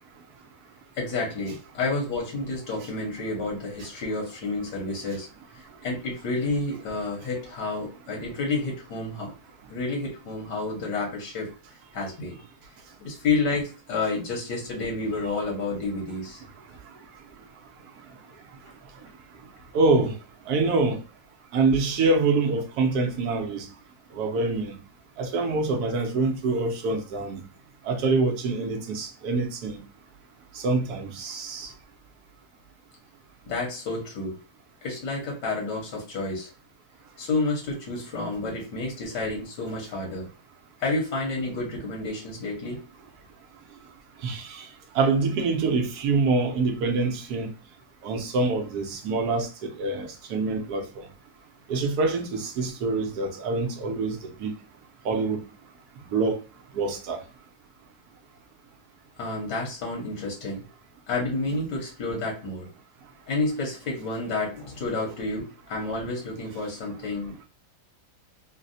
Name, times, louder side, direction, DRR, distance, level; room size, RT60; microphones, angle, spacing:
voice 1, 1.0-5.3 5.8-9.3 9.7-11.5 11.9-12.4 13.0-16.4 33.5-34.4 34.8-36.5 37.2-40.3 40.8-42.8 59.2-60.6 61.1-62.7 63.3-67.5, left 3 dB, 85° left, 1.7 m, -30 dB
voice 2, 19.7-20.1 20.5-21.0 21.5-23.7 24.1-24.7 25.2-27.5 27.8-29.8 30.5-31.7 44.2-44.7 44.9-47.5 48.0-51.1 51.7-54.5 55.0-55.4 56.1-56.4 56.7-57.2, right 3 dB, 70° right, 1.2 m, -25 dB
3.9 x 2.1 x 2.6 m
omnidirectional pair, 1.8 m